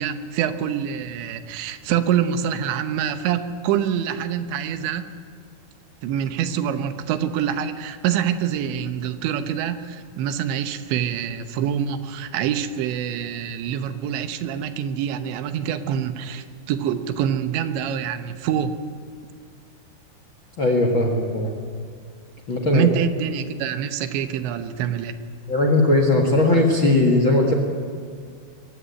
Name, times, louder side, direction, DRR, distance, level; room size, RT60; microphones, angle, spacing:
voice 1, 0.0-5.2 6.0-18.8 22.6-25.2, right 9 dB, 85° right, 9 dB, 3.4 m, -25 dB
voice 2, 20.6-21.5 22.5-22.9 25.5-27.5, left 2 dB, 50° left, 3 dB, 1.5 m, -18 dB
22.0 x 15.5 x 9.8 m, 2.1 s
omnidirectional pair, 5.1 m